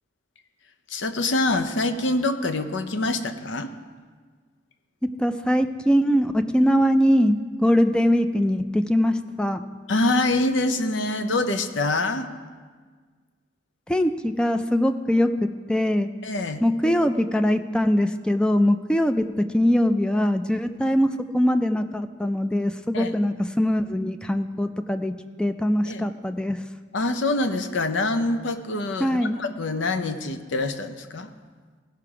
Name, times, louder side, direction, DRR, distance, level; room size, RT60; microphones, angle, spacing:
voice 1, 0.9-3.7 9.9-12.3 16.2-16.6 22.9-23.1 25.9-26.1 26.9-31.3, left 2 dB, 75° left, 9 dB, 0.7 m, -25 dB
voice 2, 5.2-9.6 13.9-16.1 16.6-19.3 19.5-21.1 21.3-25.1 25.4-26.6 29.0-29.4, equal, 5° left, 9 dB, 0.3 m, -22 dB
16.0 x 5.8 x 4.9 m, 1.5 s
head